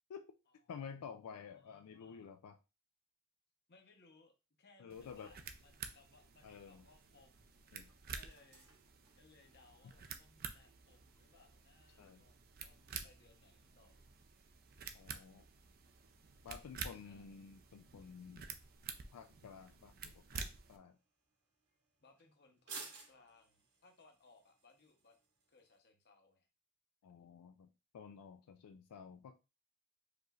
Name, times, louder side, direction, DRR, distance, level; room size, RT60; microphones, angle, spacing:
voice 1, 0.7-2.6 4.8-5.3 6.4-6.8 7.7-7.9 11.3-11.4 12.0-12.2 14.9-15.5 16.4-18.5 19.1-21.0 27.0-29.3, left 6 dB, 85° left, 0.4 m, -52 dB
voice 2, 1.3-2.3 3.7-7.6 8.1-8.7 9.1-14.2 16.9-17.4 22.0-25.2 25.5-26.5, left 3 dB, 50° left, 0.9 m, -67 dB
sound 1, 4.9-20.8, right 6 dB, 40° right, 0.5 m, -51 dB
sound 2, 6.2-25.8, right 4 dB, 75° right, 2.2 m, -61 dB
5.0 x 3.1 x 2.4 m
head